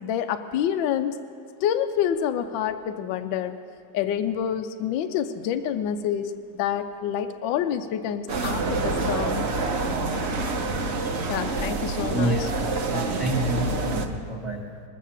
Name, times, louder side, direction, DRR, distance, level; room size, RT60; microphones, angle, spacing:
voice 1, 0.0-1.2 1.6-3.5 3.9-9.5 11.3-12.5, left 9 dB, 75° left, 8 dB, 1.3 m, -27 dB
sound 1, 8.3-14.1, right 3 dB, 45° right, 0.9 m, -27 dB
voice 2, 12.1-12.5 12.9-14.6, right 1 dB, 15° right, -1 dB, 1.6 m, -28 dB
20.5 x 7.4 x 7.2 m, 2.3 s
omnidirectional pair, 2.2 m